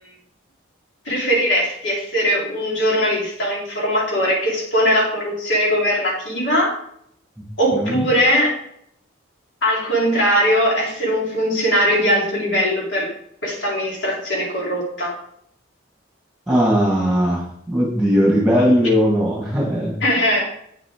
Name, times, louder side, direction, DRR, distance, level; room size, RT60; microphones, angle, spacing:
voice 1, 1.0-6.7 7.6-8.6 9.6-13.1 13.4-15.1 20.0-20.5, equal, 65° left, -4 dB, 3.2 m, -20 dB
voice 2, 7.7-8.0 16.5-20.0, equal, 5° right, -3 dB, 1.5 m, -18 dB
8.5 x 7.4 x 3.5 m, 0.70 s
head